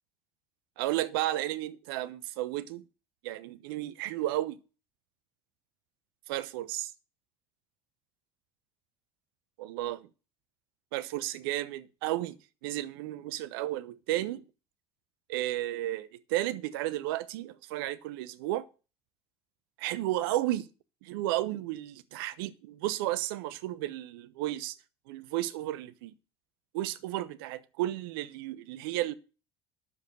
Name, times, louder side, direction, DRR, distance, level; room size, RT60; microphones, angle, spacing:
voice 1, 0.8-2.8 3.2-4.6 6.3-6.9 9.6-10.1 10.9-12.4 12.6-14.4 15.3-18.7 19.8-20.7 21.0-24.8 25.1-26.1 26.7-29.1, right 15 dB, 65° right, 0.9 m, -33 dB
10.5 x 7.2 x 6.2 m
figure-of-eight pair, 65°, 13 cm